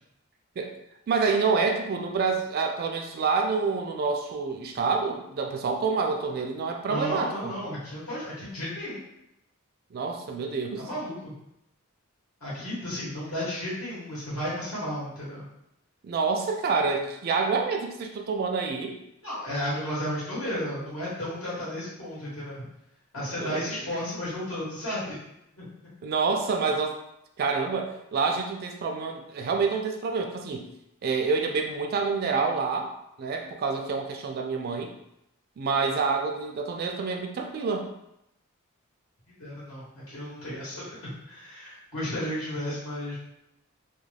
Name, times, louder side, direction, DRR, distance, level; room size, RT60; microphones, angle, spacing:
voice 1, 1.1-7.5 9.9-10.9 16.0-19.0 23.4-23.9 26.0-27.0 27.4-30.7 31.0-32.9 33.2-34.9 35.6-37.9, right 4 dB, 45° right, 3 dB, 0.3 m, -27 dB
voice 2, 6.9-9.0 10.7-11.3 12.4-15.4 19.2-22.6 23.1-25.2 25.5-25.7 39.3-43.2, equal, 70° left, -8 dB, 1.1 m, -33 dB
2.3 x 2.2 x 3.2 m, 0.82 s
head